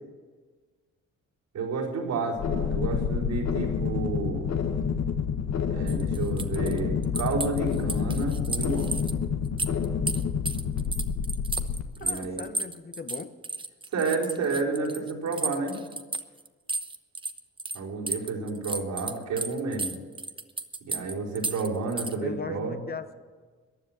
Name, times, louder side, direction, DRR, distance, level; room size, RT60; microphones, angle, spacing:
voice 1, 1.5-4.5 5.7-8.9 12.0-12.5 13.9-15.8 17.7-20.0 20.9-22.7, right 3 dB, 75° right, -4 dB, 4.6 m, -30 dB
sound 1, 2.4-11.8, left 6 dB, 60° left, 1.3 m, -28 dB
sound 2, 5.9-9.1 9.4-17.8 18.1-22.2, right 3 dB, 15° right, 0.9 m, -33 dB
voice 2, 12.0-13.3 22.2-23.1, left 5 dB, 30° left, 10 dB, 0.9 m, -38 dB
15.0 x 10.0 x 7.4 m, 1.4 s
cardioid pair, 90°, 30 cm